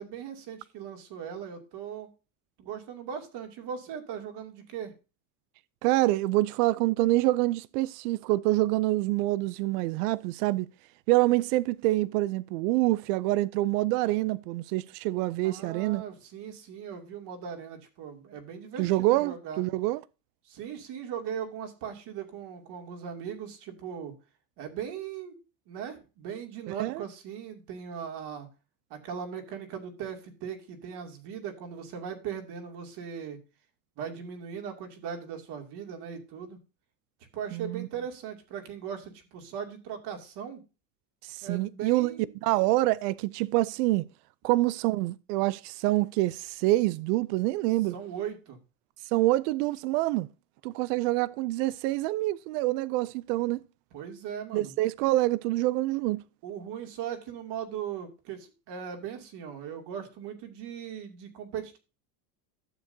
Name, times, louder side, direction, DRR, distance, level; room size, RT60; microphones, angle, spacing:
voice 1, 0.0-2.1 2.6-4.9 15.4-19.6 20.4-24.1 24.6-25.4 25.7-28.5 28.9-33.4 34.0-36.6 37.3-40.6 41.4-42.3 47.9-48.6 53.9-54.7 56.4-61.8, right 8 dB, 60° right, 2.6 m, -39 dB
voice 2, 5.8-10.7 11.1-16.0 18.8-20.0 26.8-27.0 37.5-37.9 41.2-42.1 42.4-44.1 44.4-47.9 49.1-50.3 50.6-53.6 54.5-56.2, right 18 dB, 90° right, 0.6 m, -26 dB
12.0 x 7.3 x 2.7 m
supercardioid pair, 125°, 45 cm